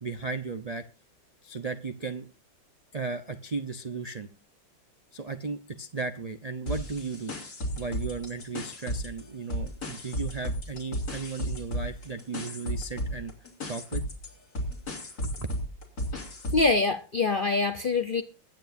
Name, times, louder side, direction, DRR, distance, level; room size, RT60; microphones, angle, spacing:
voice 1, 0.0-0.8 1.4-2.3 2.9-4.3 5.1-7.3 7.8-13.3 13.7-14.0 15.2-15.5, right 4 dB, 85° right, 0.3 m, -35 dB
sound 1, 6.7-9.2 9.5-16.7, equal, 50° left, 3.4 m, -34 dB
voice 2, 16.5-18.2, left 3 dB, 75° left, 0.4 m, -24 dB
22.5 x 9.4 x 2.6 m
omnidirectional pair, 2.1 m